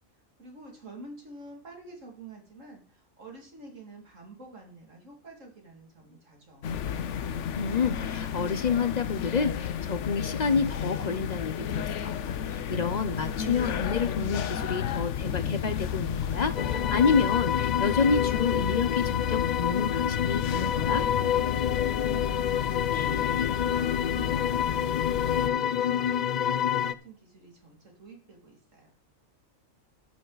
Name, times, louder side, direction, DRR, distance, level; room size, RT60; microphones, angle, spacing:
voice 1, 0.4-7.2 22.7-28.9, right 2 dB, 65° right, 1 dB, 2.8 m, -48 dB
sound 1, 6.6-25.5, left 8 dB, 65° left, 1.0 m, -32 dB
voice 2, 7.6-21.1, left 5 dB, 40° left, 11 dB, 0.7 m, -29 dB
sound 2, 16.5-26.9, left 9 dB, 80° left, 0.4 m, -28 dB
12.5 x 9.3 x 4.0 m, 0.42 s
omnidirectional pair, 1.4 m